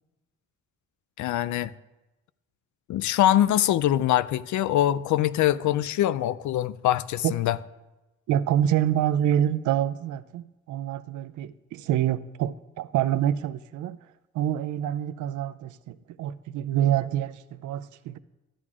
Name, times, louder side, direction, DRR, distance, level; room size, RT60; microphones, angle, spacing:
voice 1, 1.2-1.7 2.9-7.6, left 12 dB, 80° left, 0.5 m, -23 dB
voice 2, 8.3-14.0 14.3-18.2, right 11 dB, 90° right, 0.5 m, -26 dB
13.5 x 11.0 x 2.4 m
cardioid pair, 85°, 29 cm